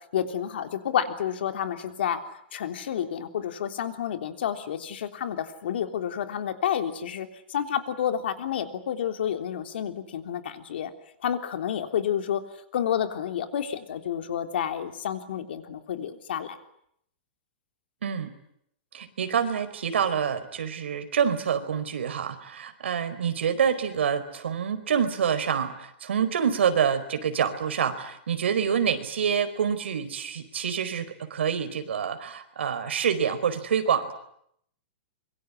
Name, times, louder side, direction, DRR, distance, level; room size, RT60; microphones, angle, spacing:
voice 1, 0.1-2.2 2.5-10.9 11.2-12.4 12.7-16.6, left 9 dB, 65° left, 7 dB, 3.5 m, -30 dB
voice 2, 18.0-18.3 18.9-34.1, right 7 dB, 90° right, 9 dB, 4.6 m, -27 dB
25.5 x 23.5 x 9.9 m, 0.73 s
hypercardioid pair, 170°, 6 cm